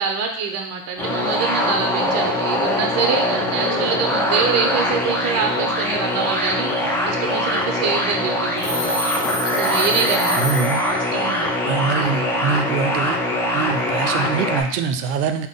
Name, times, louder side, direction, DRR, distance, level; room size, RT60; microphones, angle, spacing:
voice 1, 0.0-9.0 9.6-10.4 11.1-11.6, right 5 dB, 35° right, 3 dB, 0.7 m, -25 dB
sound 1, 1.0-14.6, left 1 dB, 5° left, 0.5 m, -22 dB
Telephone, 8.6-11.3, equal, 25° left, 1.0 m, -27 dB
voice 2, 10.3-10.9 11.7-15.5, right 6 dB, 75° right, 8 dB, 0.6 m, -24 dB
3.7 x 2.2 x 3.6 m, 0.69 s
hypercardioid pair, 100°, 45 cm